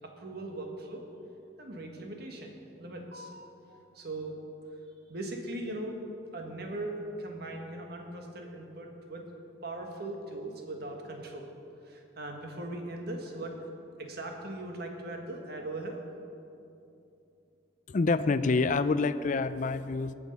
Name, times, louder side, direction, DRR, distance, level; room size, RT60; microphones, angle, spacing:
voice 1, 0.0-1.0 1.6-4.4 5.1-6.0 6.3-9.3 9.6-11.5 11.8-13.6 14.0-16.0, right 1 dB, 60° right, 2 dB, 1.6 m, -39 dB
voice 2, 17.9-20.1, left 3 dB, 45° left, 14 dB, 0.4 m, -27 dB
18.5 x 6.4 x 5.4 m, 2.7 s
head